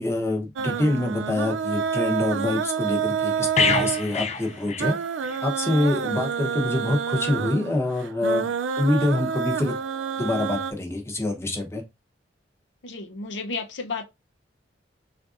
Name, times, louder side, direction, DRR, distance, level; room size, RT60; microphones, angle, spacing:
voice 1, 0.0-4.9 5.4-8.5 8.8-9.8 10.2-11.8, left 2 dB, 15° left, 0.7 m, -25 dB
sound 1, 0.6-10.7, right 7 dB, 85° right, 0.3 m, -28 dB
sound 2, 3.6-5.5 5.8-6.0, left 5 dB, 35° left, 0.4 m, -26 dB
voice 2, 12.8-14.1, left 4 dB, 75° left, 0.6 m, -32 dB
3.8 x 2.5 x 2.4 m
head